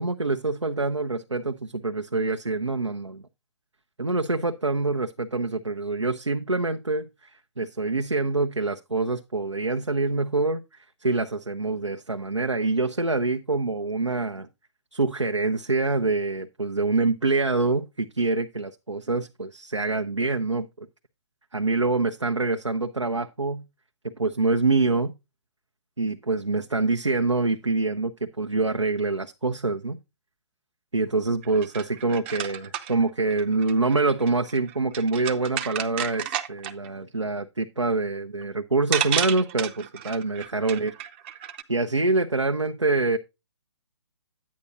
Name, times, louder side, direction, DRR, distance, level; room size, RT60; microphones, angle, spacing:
voice 1, 0.0-3.2 4.0-7.1 7.6-10.6 11.0-14.5 14.9-20.9 21.5-23.6 24.0-25.1 26.0-30.0 30.9-40.9 41.7-43.2, right 3 dB, 85° right, 0.8 m, -25 dB
sound 1, 31.4-36.9 38.4-38.5 38.9-41.6, right 9 dB, 25° right, 0.7 m, -32 dB
10.5 x 8.6 x 2.6 m
figure-of-eight pair, 135°, 15 cm